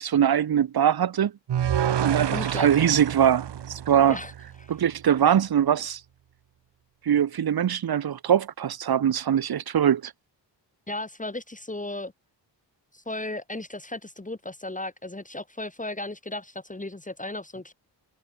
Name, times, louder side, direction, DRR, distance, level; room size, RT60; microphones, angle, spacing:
voice 1, 0.0-1.3 2.0-4.2 4.7-6.0 7.0-10.1, right 9 dB, 60° right, 1.1 m, -22 dB
sound 1, 1.5-4.7, right 9 dB, 75° right, 1.7 m, -28 dB
voice 2, 2.3-2.7 4.0-4.3 4.6-4.8 10.9-12.1 12.9-17.7, left 2 dB, 20° left, 3.5 m, -35 dB
cardioid pair, 75°, 42 cm